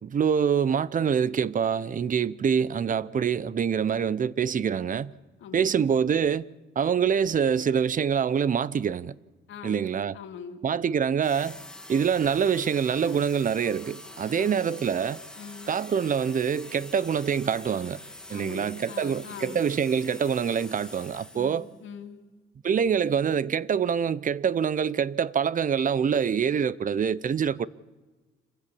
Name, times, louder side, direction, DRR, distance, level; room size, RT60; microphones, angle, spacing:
voice 1, 0.0-5.1 5.5-6.5 6.8-9.1 9.6-10.2 10.6-11.6 11.9-15.2 15.7-18.0 18.3-21.6 22.6-27.7, right 7 dB, 40° right, 0.7 m, -25 dB
voice 2, 5.4-5.9 9.5-9.8 10.1-10.6 14.3-14.6 15.4-15.7 18.3-19.6 21.3-22.2, left 7 dB, 75° left, 2.4 m, -42 dB
sound 1, 11.2-21.8, left 1 dB, 5° left, 2.4 m, -45 dB
26.5 x 15.5 x 8.5 m
cardioid pair, 90°, 20 cm